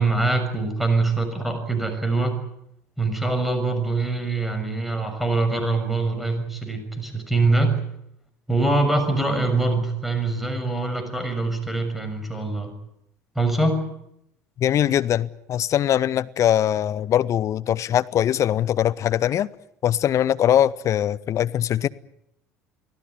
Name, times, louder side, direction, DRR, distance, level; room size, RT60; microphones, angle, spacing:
voice 1, 0.0-2.3 3.0-7.8 8.5-12.7 13.3-13.8, right 2 dB, ahead, 6.4 m, -23 dB
voice 2, 14.6-19.5 19.8-21.9, left 11 dB, 40° left, 0.9 m, -21 dB
25.0 x 16.0 x 9.8 m
figure-of-eight pair, 65°, 8 cm